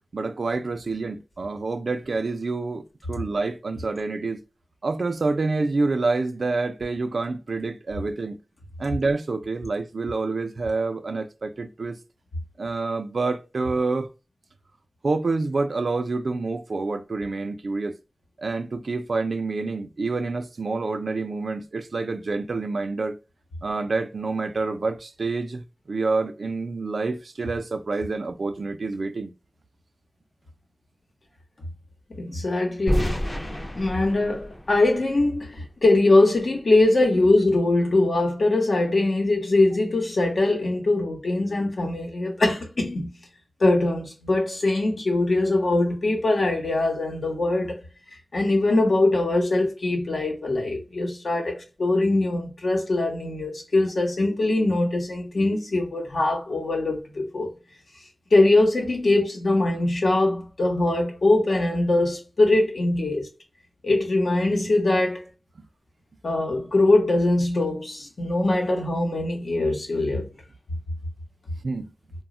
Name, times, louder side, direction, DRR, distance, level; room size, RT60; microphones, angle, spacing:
voice 1, 0.1-2.8 3.1-4.4 4.8-8.4 8.8-12.0 12.6-14.1 15.0-18.0 18.4-23.2 23.6-29.3 71.6-71.9, right 3 dB, 85° right, 0.3 m, -27 dB
voice 2, 32.2-33.2 33.5-43.1 43.6-47.8 48.3-57.5 58.3-63.3 63.8-65.2 66.2-70.3, left 2 dB, 85° left, 0.8 m, -22 dB
sound 1, 32.9-35.8, equal, 40° left, 0.5 m, -29 dB
2.2 x 2.0 x 3.6 m
wide cardioid pair, 70°, 0 cm